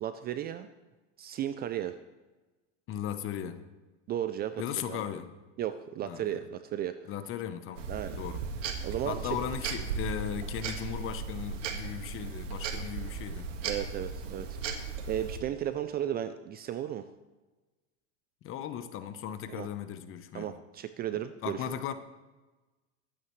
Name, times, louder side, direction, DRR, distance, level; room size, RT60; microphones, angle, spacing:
voice 1, 0.0-0.7 1.2-2.0 4.1-5.0 5.6-6.9 7.9-8.2 8.8-9.4 13.6-17.1 19.5-19.7 20.3-21.6, right 11 dB, 25° right, 11 dB, 0.4 m, -35 dB
voice 2, 2.9-3.6 4.6-5.3 6.0-6.3 7.1-8.4 9.1-13.5 18.4-20.5 21.4-21.9, left 9 dB, 35° left, 11 dB, 0.9 m, -37 dB
sound 1, 7.8-15.4, right 5 dB, 85° right, 1.9 m, -36 dB
24.0 x 8.7 x 3.2 m, 1.2 s
supercardioid pair, 125°, 37 cm